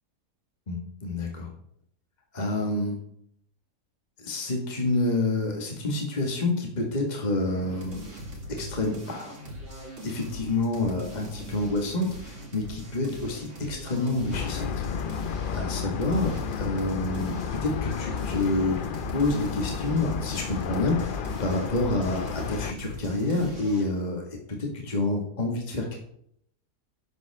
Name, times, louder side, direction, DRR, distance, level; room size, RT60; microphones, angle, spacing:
voice 1, 0.7-1.5 2.3-3.0 4.2-8.1 8.5-9.4 10.0-14.8 15.5-18.8 19.1-26.0, left 2 dB, 30° left, 1 dB, 1.9 m, -28 dB
sound 1, 7.4-23.9, right 1 dB, 55° right, 2.8 m, -41 dB
sound 2, 14.3-22.7, left 7 dB, 60° left, 0.5 m, -32 dB
11.5 x 7.9 x 3.5 m, 0.68 s
omnidirectional pair, 1.6 m